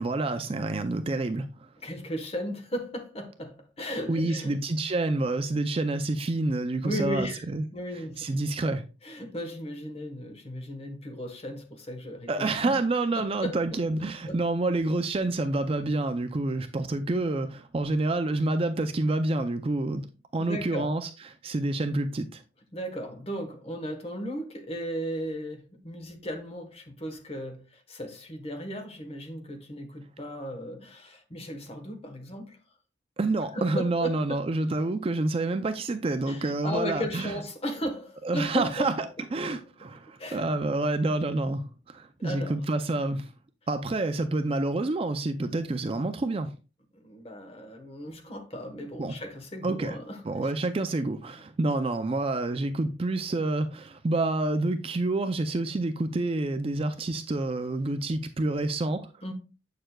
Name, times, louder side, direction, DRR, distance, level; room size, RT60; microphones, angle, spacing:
voice 1, 0.0-1.7 4.1-7.6 7.9-8.8 12.3-20.1 20.3-21.1 21.4-22.4 33.2-37.3 38.2-39.1 39.3-43.3 43.7-46.5 49.0-49.2 49.6-50.0 50.2-59.1, right 2 dB, 30° right, 0.4 m, -28 dB
voice 2, 1.8-4.5 6.8-7.4 7.7-8.3 9.0-12.7 13.1-13.8 14.3-14.4 20.4-20.9 22.7-32.6 33.5-34.4 36.3-39.1 40.2-40.5 42.2-42.6 46.9-50.5 59.2-59.3, equal, 30° left, 1.2 m, -36 dB
7.6 x 6.7 x 2.3 m
head